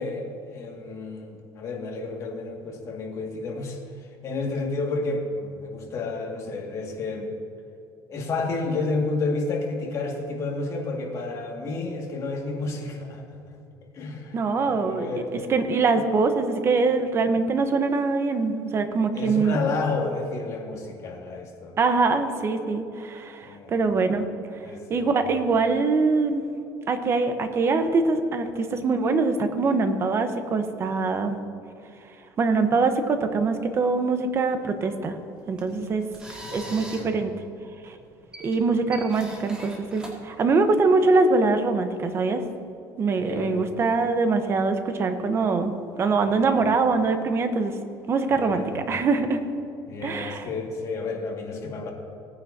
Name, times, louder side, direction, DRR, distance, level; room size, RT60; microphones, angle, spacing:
voice 1, 0.0-7.4 8.1-13.3 13.9-15.5 19.1-21.8 23.4-23.7 24.6-25.2 36.4-37.1 43.2-43.7 46.3-46.4 48.3-48.7 49.9-51.9, left 3 dB, 40° left, 0 dB, 2.0 m, -31 dB
voice 2, 14.3-15.1 15.5-19.6 21.8-24.3 24.9-26.4 26.9-31.4 32.4-35.2 35.5-36.0 36.5-37.3 37.8-37.9 38.4-42.4 43.0-47.7 48.1-49.4 50.0-50.4, right 4 dB, 35° right, 8 dB, 1.0 m, -23 dB
sound 1, 35.4-41.0, right 1 dB, 10° right, 2.2 m, -43 dB
18.0 x 9.4 x 2.8 m, 2.7 s
cardioid pair, 130°, 8 cm